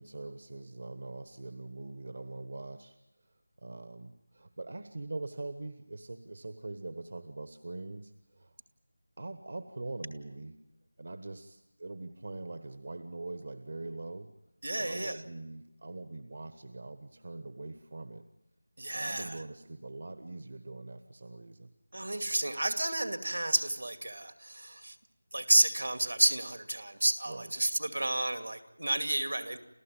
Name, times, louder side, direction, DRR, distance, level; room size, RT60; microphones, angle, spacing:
voice 1, 0.0-8.6 9.2-10.6 11.0-14.3 14.8-18.2 18.9-21.7 27.2-27.5, right 2 dB, 55° right, 10 dB, 1.3 m, -43 dB
voice 2, 14.6-15.2 18.8-19.4 21.9-25.0 25.3-29.6, right 2 dB, 80° right, 8 dB, 2.4 m, -30 dB
29.0 x 14.5 x 9.1 m, 0.95 s
figure-of-eight pair, 170°, 0 cm